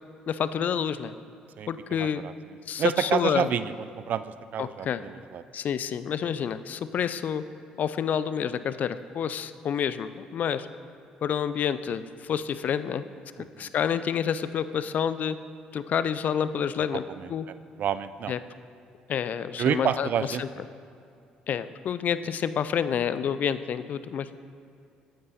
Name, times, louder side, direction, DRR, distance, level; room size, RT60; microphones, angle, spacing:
voice 1, 0.3-1.1 1.7-2.2 2.7-3.5 4.6-5.0 5.5-7.4 7.8-10.7 11.2-13.0 13.6-15.4 15.7-17.0 17.3-17.5 18.3-18.4 19.1-20.1 20.4-20.5 21.5-24.4, left 8 dB, 50° left, 14 dB, 0.4 m, -28 dB
voice 2, 1.6-2.3 2.8-5.4 13.6-13.7 17.1-17.3 17.8-18.3 19.6-20.4, right 9 dB, 55° right, 14 dB, 0.4 m, -29 dB
8.9 x 8.5 x 4.2 m, 2.5 s
hypercardioid pair, 55°, 3 cm